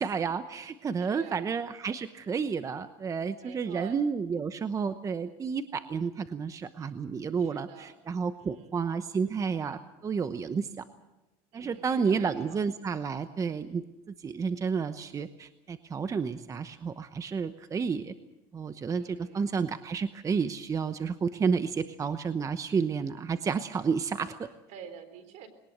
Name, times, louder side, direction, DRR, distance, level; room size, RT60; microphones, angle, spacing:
voice 1, 0.0-10.8 11.5-13.8 14.2-18.1 18.5-24.5, right 5 dB, 25° right, 11 dB, 0.9 m, -31 dB
voice 2, 1.0-1.4 3.4-4.0 6.8-6.9 7.4-8.0 8.4-8.8 11.5-12.7 19.0-19.4 24.7-25.5, right 7 dB, 65° right, 11 dB, 3.8 m, -47 dB
21.5 x 18.5 x 8.0 m, 0.99 s
supercardioid pair, 120°, 13 cm